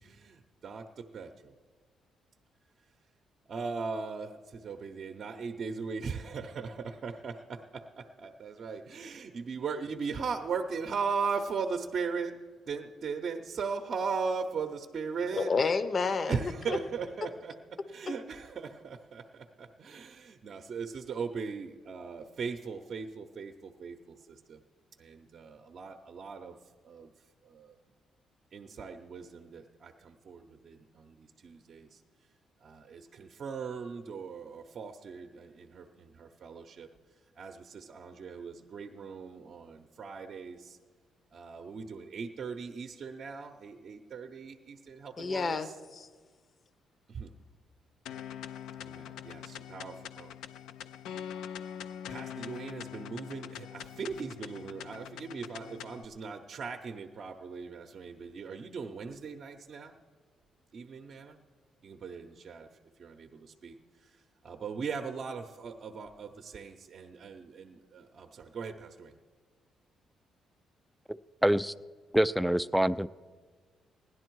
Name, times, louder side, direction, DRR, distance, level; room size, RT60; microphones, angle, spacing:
voice 1, 0.0-1.5 3.5-15.5 16.3-24.6 25.0-26.6 26.8-27.1 27.4-27.8 28.5-32.0 32.6-36.9 37.4-40.8 41.3-45.7 47.1-47.3 48.8-50.3 52.1-60.0 60.7-61.4 61.8-62.7 63.0-64.1 64.4-69.1, right 5 dB, 55° right, 0.7 m, -39 dB
voice 2, 15.3-16.8 18.1-18.2 45.2-46.1, left 4 dB, 45° left, 0.7 m, -30 dB
sound 1, 48.1-56.1, left 9 dB, 90° left, 0.4 m, -43 dB
voice 3, 71.1-71.7 72.1-73.1, equal, ahead, 0.3 m, -26 dB
16.0 x 11.0 x 4.6 m
cardioid pair, 90°, 0 cm